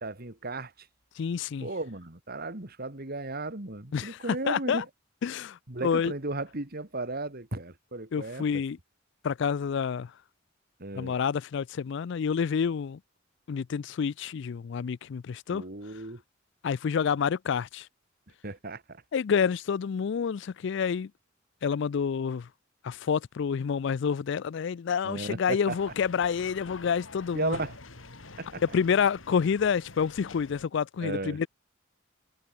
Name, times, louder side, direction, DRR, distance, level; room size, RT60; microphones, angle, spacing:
voice 1, 0.0-0.7 1.6-4.9 5.7-8.6 10.8-11.1 15.5-16.2 18.4-19.0 25.0-25.8 27.3-27.8 28.4-28.6 31.0-31.4, right 2 dB, 50° right, 2.6 m, -35 dB
voice 2, 1.2-1.7 3.9-4.8 5.2-6.1 8.1-8.8 9.2-10.1 10.9-13.0 13.5-15.6 16.6-17.9 19.1-21.1 21.6-22.5 22.8-27.6 28.7-31.5, left 6 dB, 65° left, 0.4 m, -28 dB
sound 1, 25.7-30.7, left 3 dB, 85° left, 3.5 m, -47 dB
head